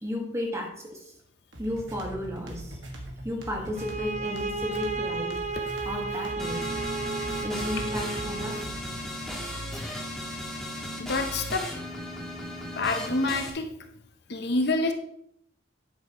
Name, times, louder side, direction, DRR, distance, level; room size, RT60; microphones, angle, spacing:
voice 1, 0.0-1.1 1.6-2.8 3.2-5.4 5.8-6.9 7.4-8.7, left 1 dB, 15° right, 1 dB, 1.5 m, -34 dB
sound 1, 1.5-9.1, right 1 dB, 60° right, 1.7 m, -41 dB
sound 2, 3.7-8.7, right 3 dB, 35° right, 0.6 m, -33 dB
sound 3, 6.4-13.5, left 1 dB, ahead, 1.5 m, -36 dB
voice 2, 11.0-11.6 12.8-13.7 14.3-14.9, left 2 dB, 55° left, 6 dB, 0.7 m, -27 dB
9.8 x 7.9 x 3.0 m, 0.72 s
head